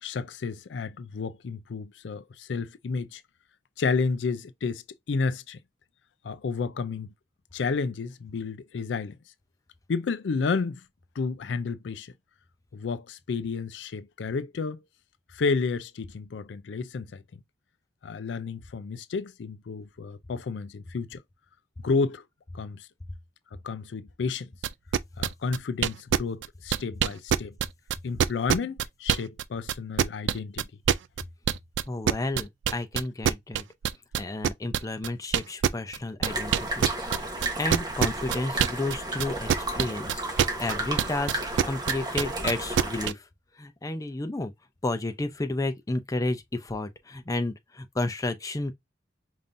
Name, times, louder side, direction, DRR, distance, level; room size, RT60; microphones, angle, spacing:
voice 1, 0.0-3.2 3.8-5.6 6.2-7.1 7.5-9.2 9.9-10.8 11.2-12.1 12.7-14.8 15.3-17.4 18.0-21.2 21.8-22.2 22.5-22.9 23.6-24.5 25.2-27.6 28.0-30.7, left 4 dB, 75° left, 0.4 m, -31 dB
sound 1, 24.6-29.4 29.7-38.9 39.2-43.1, right 8 dB, 80° right, 0.3 m, -24 dB
voice 2, 31.9-33.6 34.2-36.9 37.6-39.5 39.7-41.4 41.7-43.2 43.6-44.5 44.8-48.7, left 2 dB, 20° left, 0.5 m, -31 dB
sound 2, 36.2-43.1, right 2 dB, 25° right, 1.1 m, -33 dB
5.2 x 2.6 x 2.5 m
head